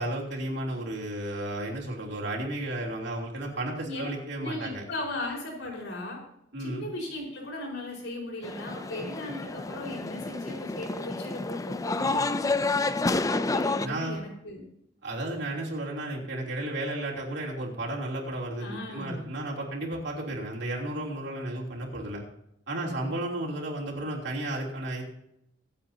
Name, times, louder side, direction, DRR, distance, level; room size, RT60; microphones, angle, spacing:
voice 1, 0.0-4.8 6.5-6.9 12.0-12.2 13.8-14.2 15.0-22.2 22.7-25.0, right 1 dB, 65° right, -2 dB, 3.2 m, -33 dB
voice 2, 4.4-6.2 6.6-12.5 13.0-14.6 18.6-19.2 22.8-23.1, left 2 dB, 80° left, -2 dB, 4.8 m, -37 dB
sound 1, 8.4-13.9, left 3 dB, 20° left, 0.4 m, -29 dB
25.0 x 8.3 x 2.8 m, 0.77 s
head